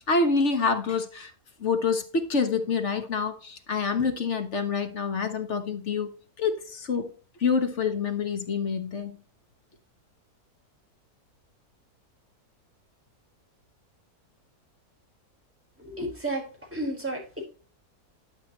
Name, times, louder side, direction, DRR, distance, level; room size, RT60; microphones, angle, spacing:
voice 1, 0.1-1.3 1.6-6.1 6.4-7.1 7.4-9.2, left 4 dB, 55° left, 1.4 m, -27 dB
voice 2, 15.8-17.4, right 1 dB, 10° right, 4.3 m, -33 dB
11.5 x 6.0 x 3.1 m
omnidirectional pair, 1.6 m